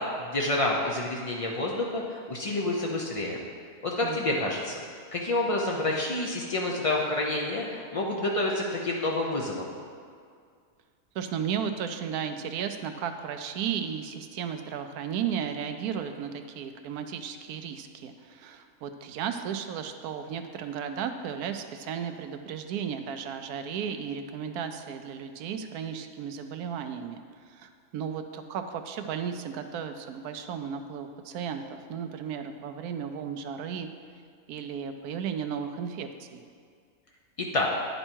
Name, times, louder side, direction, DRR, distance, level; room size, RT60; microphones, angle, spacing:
voice 1, 0.0-3.4 3.8-4.8 5.1-9.7 37.4-37.7, left 2 dB, 60° left, -2 dB, 0.3 m, -28 dB
voice 2, 4.0-4.4 11.1-27.2 27.5-33.9 34.5-36.4, right 7 dB, 80° right, 7 dB, 1.1 m, -34 dB
9.8 x 5.5 x 4.4 m, 2.1 s
omnidirectional pair, 1.6 m